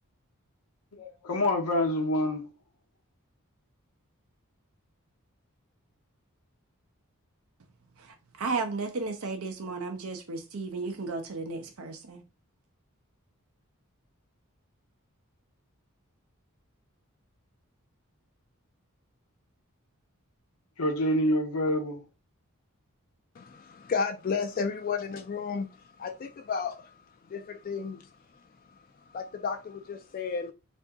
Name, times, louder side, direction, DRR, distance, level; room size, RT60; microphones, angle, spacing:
voice 1, 1.0-2.5 20.8-22.0, left 1 dB, 80° left, 0.8 m, -27 dB
voice 2, 8.4-12.2, right 3 dB, 75° right, 0.6 m, -34 dB
voice 3, 23.4-25.7 26.0-26.9 27.3-28.1 29.1-30.5, left 5 dB, 40° left, 0.3 m, -32 dB
2.7 x 2.6 x 3.5 m
head